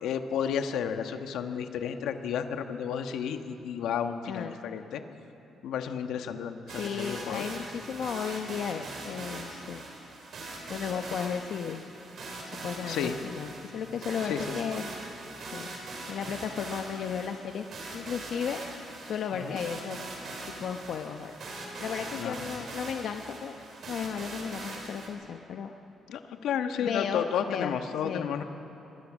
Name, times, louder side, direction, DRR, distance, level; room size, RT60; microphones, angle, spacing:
voice 1, 0.0-5.0 5.6-7.4 12.9-13.1 14.3-14.6 19.3-19.6 22.2-22.3 26.1-28.4, left 8 dB, 85° left, 6 dB, 1.4 m, -32 dB
sound 1, 6.7-25.1, right 2 dB, 55° right, 5.1 m, -41 dB
voice 2, 6.8-9.8 10.7-11.8 12.5-14.9 15.5-15.8 16.1-17.6 17.9-18.6 19.0-20.0 20.6-21.4 21.8-23.6 23.9-25.7 26.8-27.8 28.0-28.3, left 7 dB, 65° left, 5 dB, 0.9 m, -34 dB
25.5 x 21.0 x 6.3 m, 3.0 s
cardioid pair, 120°, 0 cm